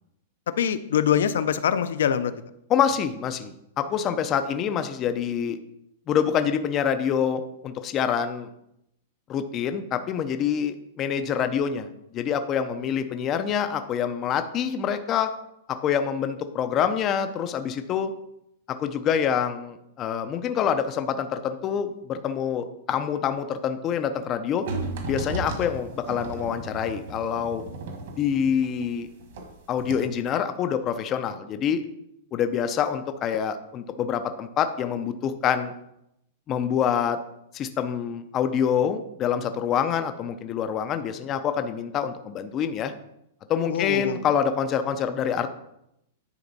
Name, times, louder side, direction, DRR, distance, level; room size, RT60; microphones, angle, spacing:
voice 1, 0.5-2.3 43.7-44.3, left 9 dB, 75° left, 12 dB, 0.5 m, -24 dB
voice 2, 2.7-5.6 6.1-8.5 9.3-15.3 15.7-18.1 18.7-24.6 25.1-27.6 28.2-29.1 29.7-31.8 32.3-35.7 36.5-37.2 37.5-42.9 43.5-45.5, left 8 dB, 20° left, 9 dB, 0.3 m, -26 dB
sound 1, 24.7-29.5 29.8-29.9, right 3 dB, 55° right, 1.4 m, -34 dB
9.8 x 4.3 x 4.0 m, 0.80 s
supercardioid pair, 180°, 0 cm